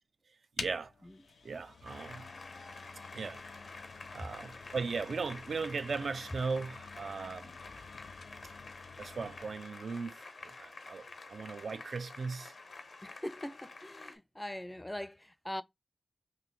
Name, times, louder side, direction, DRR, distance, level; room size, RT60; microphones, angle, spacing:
sound 1, 0.6-9.7, left 5 dB, 90° left, 0.4 m, -50 dB
voice 1, 0.6-0.9 1.4-2.3 3.1-3.4 4.1-7.5 9.0-12.5, right 4 dB, 80° right, 0.3 m, -38 dB
Applause, 1.8-14.1, left 3 dB, 70° left, 0.8 m, -49 dB
voice 2, 13.0-15.6, left 1 dB, 15° left, 0.4 m, -42 dB
3.1 x 2.7 x 4.0 m
cardioid pair, 50°, 0 cm